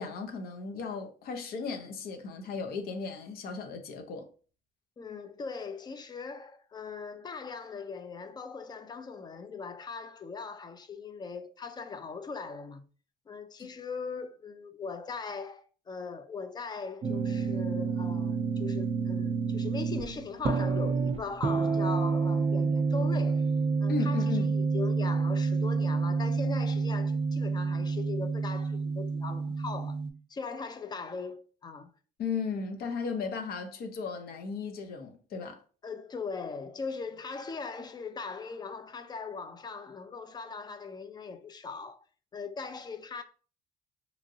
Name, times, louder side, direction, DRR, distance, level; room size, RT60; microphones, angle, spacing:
voice 1, 0.0-4.3 23.9-24.5 32.2-35.6, left 5 dB, 65° left, 0.6 m, -35 dB
voice 2, 5.0-12.9 13.3-23.5 23.8-30.0 30.3-31.9 35.8-42.0 42.3-43.2, left 4 dB, 25° left, 0.4 m, -40 dB
sound 1, 17.0-30.1, right 4 dB, 35° right, 0.5 m, -29 dB
2.9 x 2.6 x 2.7 m
cardioid pair, 110°, 17 cm